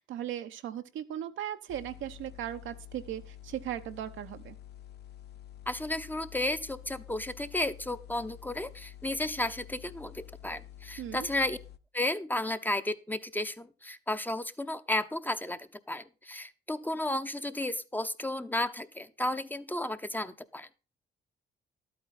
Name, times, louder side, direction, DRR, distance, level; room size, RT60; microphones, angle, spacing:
voice 1, 0.0-4.6 11.0-11.3, right 11 dB, 80° right, 8 dB, 0.9 m, -38 dB
sound 1, 1.7-11.8, left 11 dB, 55° left, 0.7 m, -49 dB
voice 2, 5.7-11.6 11.9-20.7, left 1 dB, 10° left, 10 dB, 0.8 m, -33 dB
12.0 x 8.7 x 4.2 m, 0.32 s
cardioid pair, 90°, 20 cm